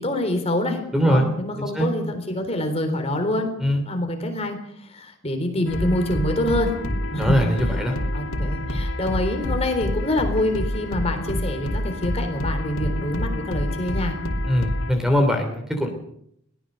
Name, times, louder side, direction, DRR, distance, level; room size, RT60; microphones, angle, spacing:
voice 1, 0.0-3.5 3.8-6.7 7.1-7.8 8.1-14.2, left 1 dB, 30° left, 6 dB, 3.9 m, -26 dB
voice 2, 0.9-1.2 1.6-1.9 3.6-3.8 7.2-8.0 14.5-15.9, equal, ahead, 5 dB, 3.0 m, -21 dB
sound 1, 5.7-14.9, left 1 dB, 90° left, 2.8 m, -27 dB
23.0 x 18.0 x 6.7 m, 0.72 s
head